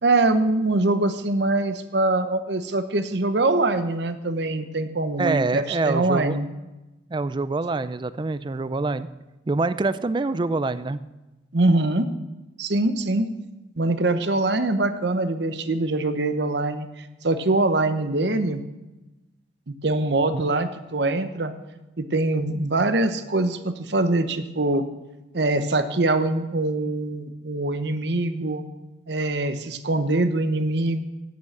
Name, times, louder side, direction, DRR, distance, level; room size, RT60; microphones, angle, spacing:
voice 1, 0.0-6.5 11.5-12.1 12.6-13.3 13.8-18.6 19.7-21.5 22.0-24.8 25.3-28.6 29.1-31.0, right 2 dB, 65° right, 10 dB, 0.8 m, -23 dB
voice 2, 5.2-6.4 7.1-9.1 9.5-11.0 20.3-20.6, right 3 dB, 25° right, 14 dB, 0.3 m, -25 dB
9.1 x 8.3 x 7.1 m, 1.1 s
head